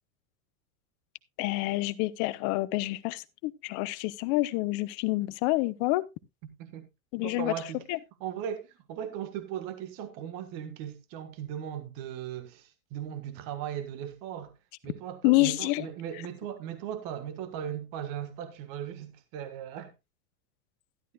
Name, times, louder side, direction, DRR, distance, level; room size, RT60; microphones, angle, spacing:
voice 1, 1.4-6.0 7.1-7.5 7.9-8.0 15.2-15.9, left 20 dB, 45° left, 0.8 m, -27 dB
voice 2, 7.2-7.8 8.2-14.5 14.8-19.9, right 9 dB, 45° right, 1.6 m, -38 dB
12.5 x 11.0 x 2.3 m
supercardioid pair, 130°, 46 cm